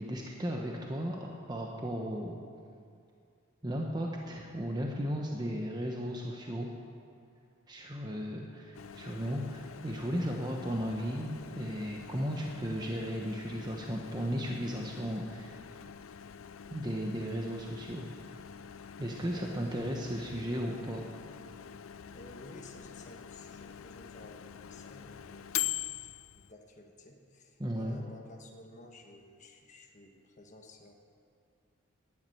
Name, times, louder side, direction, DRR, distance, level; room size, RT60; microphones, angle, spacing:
voice 1, 0.0-2.4 3.6-6.7 7.7-15.6 16.7-18.4 19.0-21.1 27.6-28.0, equal, 20° right, 0 dB, 0.9 m, -35 dB
Microwave oven, 8.7-26.5, left 10 dB, 75° left, 0.5 m, -44 dB
voice 2, 22.1-24.4 24.7-25.7 26.0-30.9, left 1 dB, 35° left, 1 dB, 1.3 m, -53 dB
12.0 x 9.5 x 9.2 m, 2.4 s
head